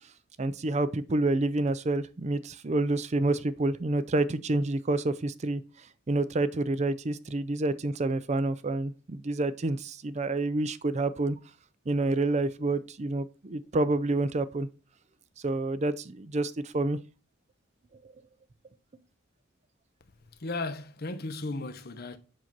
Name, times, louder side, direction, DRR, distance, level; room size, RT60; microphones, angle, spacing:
voice 1, 0.4-5.6 6.1-11.4 11.9-14.7 15.4-17.0, right 2 dB, 35° right, 0.5 m, -28 dB
voice 2, 20.2-22.2, left 2 dB, 50° left, 0.9 m, -35 dB
7.5 x 2.7 x 5.9 m
head